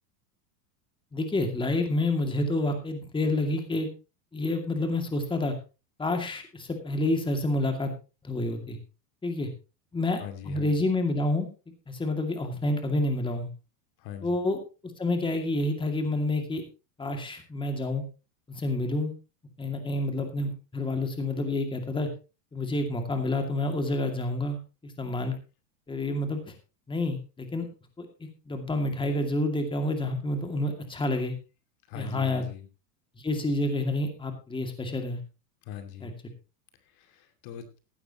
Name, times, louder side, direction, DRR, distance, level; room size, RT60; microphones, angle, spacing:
voice 1, 1.1-3.9 4.3-5.6 6.0-7.9 8.2-8.8 9.2-9.5 9.9-11.5 11.9-13.5 14.2-14.6 15.0-16.6 17.0-18.0 18.5-19.1 19.6-22.1 22.5-24.6 24.8-25.4 25.9-26.5 26.9-27.7 28.0-31.3 31.9-32.4 33.2-35.2 36.0-36.1, left 2 dB, 10° left, 5 dB, 2.3 m, -28 dB
voice 2, 10.2-10.7 14.0-14.4 31.9-32.6 35.7-36.1 37.0-37.7, left 10 dB, 50° left, 7 dB, 2.4 m, -41 dB
16.0 x 12.0 x 3.0 m, 0.31 s
supercardioid pair, 135°, 47 cm